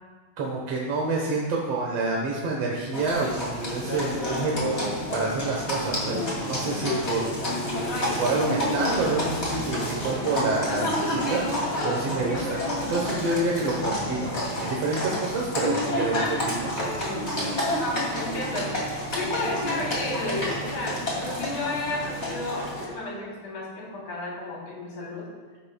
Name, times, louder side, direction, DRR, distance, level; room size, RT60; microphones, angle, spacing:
voice 1, 0.4-7.3 8.2-11.5 11.8-12.6 12.9-16.7, right 3 dB, 60° right, -2 dB, 2.1 m, -28 dB
Livestock farm animals working animals, 2.9-22.8, left 1 dB, 25° left, 2.6 m, -29 dB
voice 2, 6.6-6.9 17.0-17.7 18.1-18.7 19.1-25.3, left 2 dB, 80° left, -6 dB, 4.8 m, -33 dB
15.0 x 11.5 x 2.3 m, 1.4 s
omnidirectional pair, 3.3 m